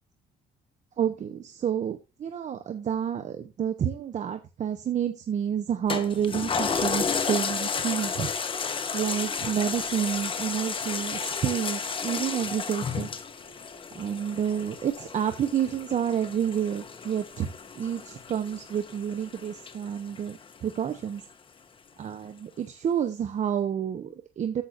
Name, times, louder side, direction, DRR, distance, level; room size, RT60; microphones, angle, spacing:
voice 1, 1.0-8.3 8.9-13.1 13.9-21.2 22.0-24.6, right 8 dB, 45° right, 8 dB, 0.9 m, -29 dB
Toilet flush, 5.9-20.7 21.2-21.3, left 5 dB, 30° left, 1.2 m, -32 dB
14.0 x 5.8 x 2.6 m, 0.27 s
cardioid pair, 110°, 17 cm